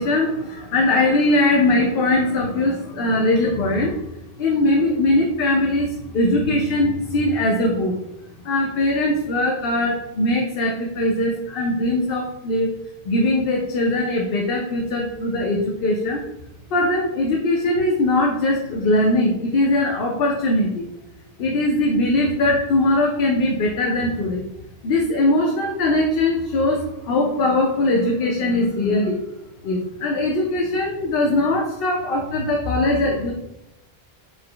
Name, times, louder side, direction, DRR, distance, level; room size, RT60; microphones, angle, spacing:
voice 1, 0.0-7.9 8.4-12.7 13.0-16.2 16.7-20.8 21.4-24.4 24.8-29.2 29.6-33.3, left 1 dB, 70° left, 0 dB, 0.8 m, -21 dB
4.4 x 2.1 x 3.8 m, 0.87 s
omnidirectional pair, 1.1 m